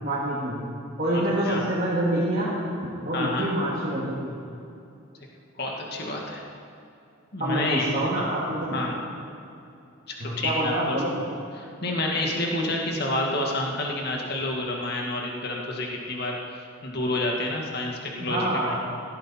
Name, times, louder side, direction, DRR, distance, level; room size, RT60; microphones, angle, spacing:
voice 1, 0.0-0.5 1.0-2.5 3.0-4.3 7.4-8.8 10.2-11.1 18.2-18.7, right 1 dB, 40° right, -8 dB, 2.6 m, -26 dB
voice 2, 1.1-1.7 3.1-3.5 5.6-6.4 7.3-8.0 8.7-9.0 10.1-11.0 11.6-16.4 16.8-18.7, left 2 dB, 50° left, -1 dB, 2.0 m, -29 dB
17.0 x 14.0 x 4.4 m, 2.6 s
head